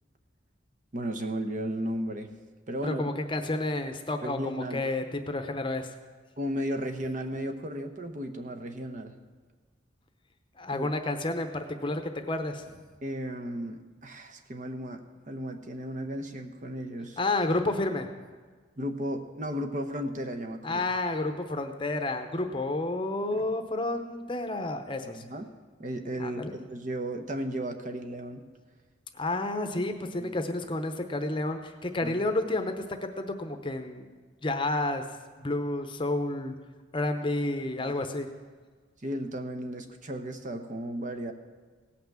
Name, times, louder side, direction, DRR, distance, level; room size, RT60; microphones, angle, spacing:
voice 1, 0.9-2.3 2.7-3.0 4.2-4.8 6.4-9.1 10.7-10.9 13.0-17.2 18.8-20.8 23.3-23.5 25.1-25.4 25.8-28.4 30.2-30.4 32.0-32.2 37.8-37.9 39.0-41.3, equal, 40° right, 5 dB, 0.9 m, -35 dB
voice 2, 2.8-5.9 10.6-12.8 17.2-18.1 20.6-25.2 26.2-26.5 29.1-34.1 34.4-35.0 35.4-36.5 36.9-38.3, left 2 dB, 25° left, 7 dB, 0.8 m, -30 dB
17.5 x 5.9 x 7.3 m, 1.5 s
head